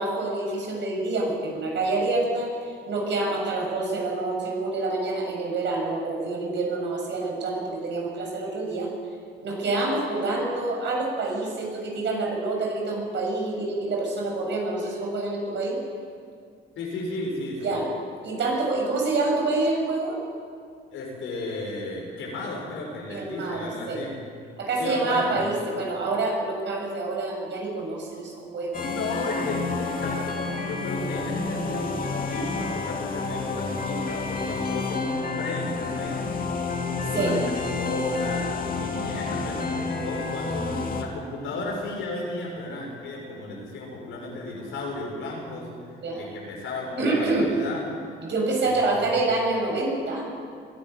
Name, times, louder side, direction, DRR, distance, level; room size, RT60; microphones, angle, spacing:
voice 1, 0.0-8.9 9.4-15.8 17.6-17.9 18.2-20.2 23.1-24.0 24.6-28.8 37.1-37.3 46.0-46.3 47.0-47.5 48.2-50.3, right 2 dB, 65° right, 0 dB, 7.3 m, -27 dB
voice 2, 16.8-17.9 20.9-24.2 24.8-25.4 28.9-36.2 36.9-47.8 48.8-49.0, left 2 dB, 85° left, -2 dB, 7.0 m, -34 dB
sound 1, 28.7-41.0, left 4 dB, 45° left, 2.6 m, -29 dB
21.0 x 13.0 x 9.9 m, 2.2 s
cardioid pair, 90°, 20 cm